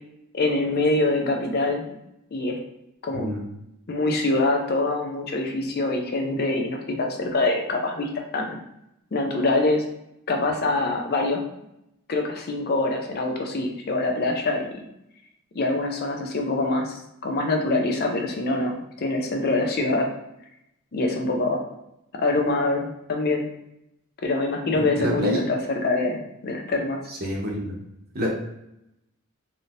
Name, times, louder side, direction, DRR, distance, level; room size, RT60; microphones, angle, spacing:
voice 1, 0.3-2.0 2.3-2.6 3.0-3.3 3.9-8.6 9.1-9.8 10.3-11.4 12.1-14.9 15.5-20.1 20.9-21.6 22.1-23.5 24.2-27.0, left 2 dB, 45° left, 3 dB, 0.5 m, -25 dB
voice 2, 24.8-25.4 27.1-27.8 28.1-28.3, equal, 45° right, -1 dB, 0.8 m, -27 dB
3.5 x 2.6 x 2.5 m, 0.83 s
head